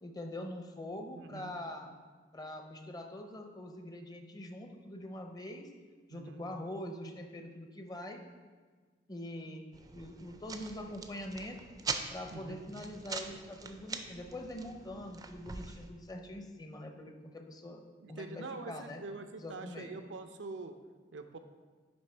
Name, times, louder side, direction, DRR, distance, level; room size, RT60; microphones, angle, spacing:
voice 1, 0.0-1.9 2.3-5.7 6.1-8.2 9.1-9.6 9.9-11.6 12.1-19.0 19.4-19.9, left 1 dB, 20° left, 4 dB, 0.6 m, -44 dB
voice 2, 1.2-1.6 6.1-6.5 12.3-12.6 18.0-20.8 21.1-21.4, right 3 dB, 90° right, 7 dB, 0.5 m, -44 dB
sound 1, 9.7-15.9, right 4 dB, 20° right, 0.4 m, -43 dB
9.8 x 3.3 x 4.4 m, 1.5 s
head